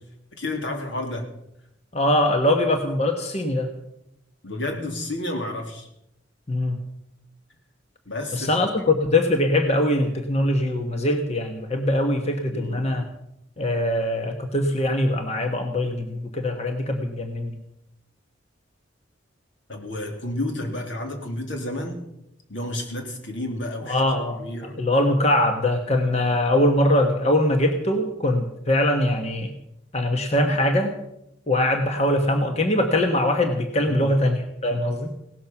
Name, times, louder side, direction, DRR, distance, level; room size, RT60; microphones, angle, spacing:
voice 1, 0.4-1.3 4.4-5.9 8.0-8.5 12.5-12.9 19.7-22.0 22.5-24.8 26.1-26.4 33.8-34.2, left 1 dB, 70° left, 3 dB, 3.1 m, -31 dB
voice 2, 1.9-3.7 6.5-6.8 8.3-13.0 13.6-17.5 23.9-24.4 24.8-29.5 29.9-30.9 31.5-35.1, left 1 dB, 35° left, 5 dB, 1.3 m, -22 dB
17.5 x 12.5 x 6.0 m, 0.82 s
head